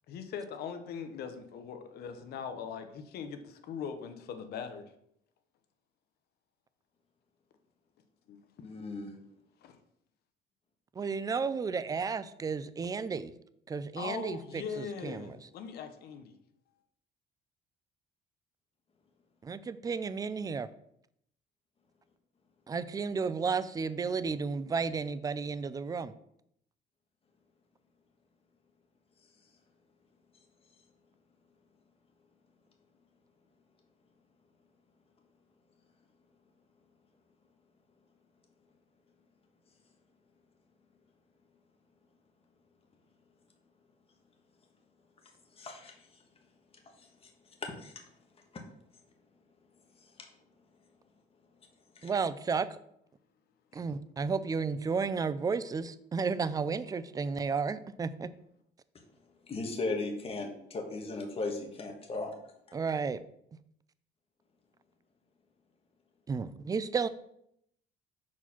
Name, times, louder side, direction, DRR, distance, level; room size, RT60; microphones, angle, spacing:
voice 1, 0.1-4.9 8.3-8.5 9.6-9.8 14.0-16.3 53.7-53.8, left 7 dB, 70° left, 8 dB, 0.9 m, -41 dB
voice 2, 8.6-9.1 45.6-46.1 47.0-47.3 47.6-47.9 48.5-48.6 50.0-50.3 51.9-52.1 59.5-62.3, left 3 dB, 35° left, 2 dB, 1.4 m, -37 dB
voice 3, 11.0-13.3 13.7-15.3 19.4-20.7 22.7-26.1 52.0-52.8 53.7-58.3 62.7-63.2 66.3-67.1, right 5 dB, 20° right, 14 dB, 0.4 m, -33 dB
4.6 x 4.3 x 5.8 m, 0.74 s
cardioid pair, 110°, 17 cm